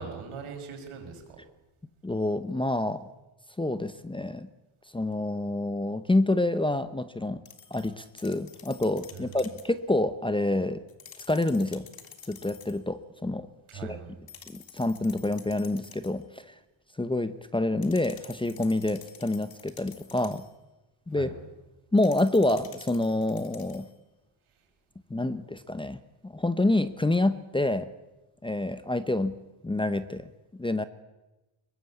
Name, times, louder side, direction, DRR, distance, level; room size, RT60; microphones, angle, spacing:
voice 1, 0.0-1.4 9.1-9.5 13.7-14.1 21.1-21.3, right 5 dB, 85° right, 3 dB, 6.1 m, -41 dB
voice 2, 2.0-3.1 3.6-4.5 4.9-7.4 7.7-10.8 11.3-11.9 12.3-13.5 13.7-14.0 14.5-16.5 17.0-20.5 21.1-21.3 21.9-23.9 25.1-27.9 28.4-29.4 29.6-30.8, left 2 dB, 10° left, 13 dB, 0.8 m, -27 dB
sound 1, 7.5-9.7 10.9-12.8 14.3-16.2 17.8-20.5 22.0-24.0, left 7 dB, 45° left, 2.2 m, -50 dB
23.0 x 20.5 x 8.4 m, 1.0 s
cardioid pair, 160°, 48 cm